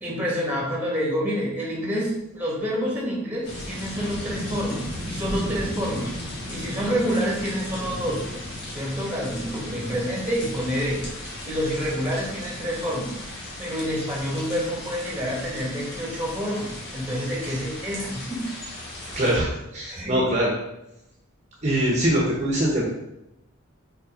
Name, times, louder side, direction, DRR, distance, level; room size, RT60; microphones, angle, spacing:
voice 1, 0.0-6.1 6.5-8.2 8.7-11.0 11.5-18.4 19.0-19.2 19.9-20.2, equal, 10° right, -3 dB, 1.8 m, -28 dB
sound 1, 3.4-19.4, left 1 dB, 50° left, 1.9 m, -35 dB
voice 2, 19.0-20.5 21.6-22.8, right 1 dB, 30° right, -3 dB, 1.1 m, -23 dB
5.5 x 4.6 x 5.1 m, 0.88 s
head